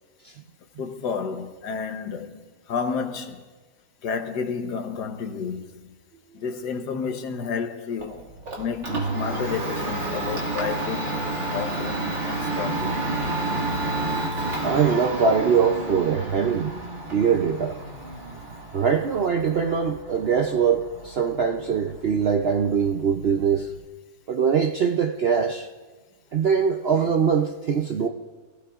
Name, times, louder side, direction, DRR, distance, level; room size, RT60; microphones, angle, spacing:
voice 1, 0.8-2.4 2.7-3.4 4.0-5.9 6.3-8.2 8.6-13.0, left 6 dB, 85° left, 1.6 m, -31 dB
Domestic sounds home sounds, 8.0-23.8, right 2 dB, 45° right, 2.2 m, -30 dB
voice 2, 14.6-16.8 17.1-17.8 18.7-23.7 24.3-25.7 26.3-28.1, right 6 dB, 65° right, 0.6 m, -22 dB
25.5 x 16.5 x 2.4 m
omnidirectional pair, 1.7 m